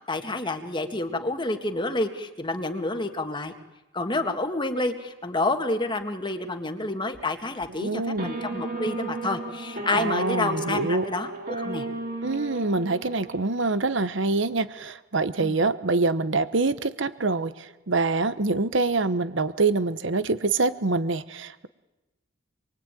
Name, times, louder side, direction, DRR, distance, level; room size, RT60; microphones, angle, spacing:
voice 1, 0.1-3.5 3.9-11.9 15.4-15.6, left 2 dB, 25° left, 6 dB, 1.9 m, -29 dB
voice 2, 7.8-8.3 9.9-11.0 12.2-21.7, right 3 dB, 65° right, 14 dB, 1.1 m, -25 dB
sound 1, 8.1-13.7, right 2 dB, 50° right, 4.5 m, -34 dB
27.0 x 23.0 x 9.2 m, 1.0 s
head